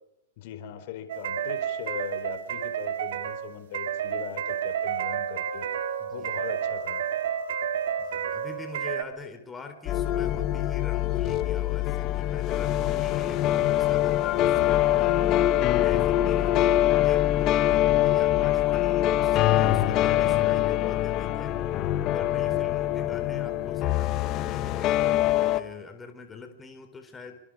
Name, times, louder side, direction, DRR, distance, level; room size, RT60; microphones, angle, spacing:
voice 1, 0.4-5.7 6.1-7.0, left 10 dB, 55° left, 10 dB, 4.3 m, -40 dB
sound 1, 1.1-9.0, right 8 dB, 70° right, 3.0 m, -30 dB
voice 2, 6.0-6.4 8.0-15.3 15.7-21.6 22.1-27.4, left 4 dB, 15° left, 6 dB, 4.2 m, -44 dB
sound 2, 9.9-25.6, left 13 dB, 35° left, 1.6 m, -24 dB
29.5 x 26.5 x 5.0 m, 0.82 s
hypercardioid pair, 130°, 0 cm